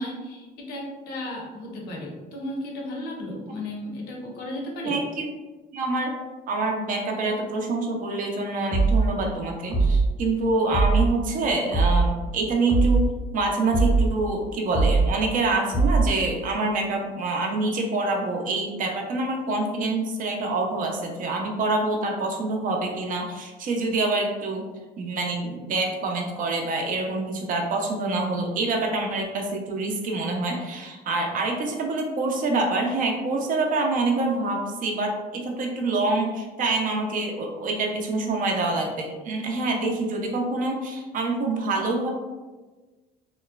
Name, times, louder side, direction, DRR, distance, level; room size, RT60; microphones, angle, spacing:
voice 1, 0.0-5.0, left 1 dB, 80° left, 0 dB, 0.7 m, -34 dB
voice 2, 4.8-5.3 5.7-6.1 6.5-13.0 13.3-24.7 25.0-42.1, right 2 dB, 50° right, 1 dB, 0.5 m, -26 dB
sound 1, 8.7-9.1 9.7-10.1 10.7-11.1 11.7-12.1 12.7-13.1 13.7-14.1 14.7-15.1 15.7-16.1, right 3 dB, 25° right, 0.8 m, -20 dB
2.9 x 2.0 x 2.3 m, 1.2 s
cardioid pair, 110°, 17 cm